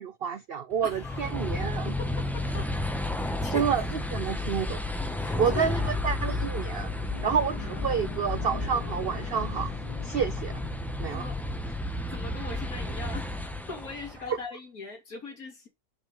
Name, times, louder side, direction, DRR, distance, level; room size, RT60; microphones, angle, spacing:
voice 1, 0.0-1.9 3.5-3.8 4.1-4.8 5.4-6.9 7.2-9.7 10.0-10.5 11.0-11.3 14.3-14.4, right 7 dB, 85° right, 0.5 m, -29 dB
voice 2, 0.8-1.2 1.5-2.7 3.1-3.7 5.1-5.8 11.1-11.4 12.1-13.3 13.7-15.7, left 3 dB, 60° left, 3.2 m, -40 dB
sound 1, 0.8-14.3, left 2 dB, ahead, 0.6 m, -32 dB
sound 2, 6.7-11.3, left 8 dB, 80° left, 1.6 m, -44 dB
7.3 x 5.4 x 5.6 m
omnidirectional pair, 1.7 m